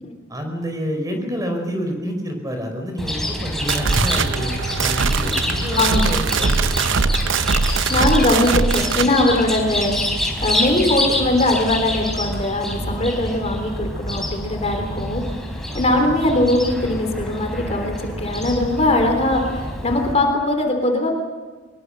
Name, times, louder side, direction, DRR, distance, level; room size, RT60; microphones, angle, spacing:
voice 1, 0.3-4.5 4.8-7.1 15.7-15.9, equal, 20° right, 4 dB, 5.0 m, -28 dB
Chirp tweet, 3.0-20.1, left 1 dB, ahead, 4.4 m, -27 dB
sound 1, 3.4-9.1, right 5 dB, 70° right, 0.7 m, -21 dB
voice 2, 7.9-15.2 15.7-21.2, left 1 dB, 35° left, 3 dB, 3.6 m, -20 dB
23.0 x 22.5 x 6.7 m, 1.4 s
head